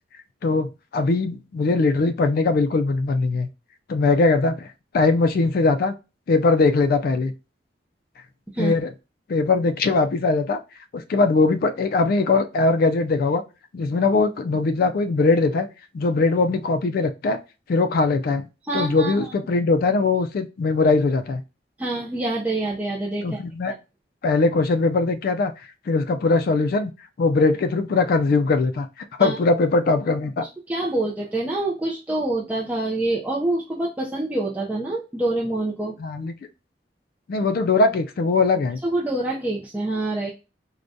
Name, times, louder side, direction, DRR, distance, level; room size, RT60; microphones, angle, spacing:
voice 1, 0.4-3.5 3.9-4.7 4.9-5.9 6.3-7.3 8.6-8.9 9.3-10.6 10.9-13.4 13.7-15.7 15.9-17.4 17.7-18.5 18.7-21.4 23.2-23.7 24.2-25.5 25.9-26.9 27.2-30.5 36.0-36.3 37.3-38.8, left 3 dB, 55° left, 8 dB, 0.3 m, -21 dB
voice 2, 18.6-19.3 21.8-23.4 23.7-23.8 29.2-29.4 30.4-35.9 38.8-40.3, right 2 dB, 10° right, -5 dB, 0.4 m, -26 dB
4.7 x 2.2 x 2.6 m, 0.29 s
head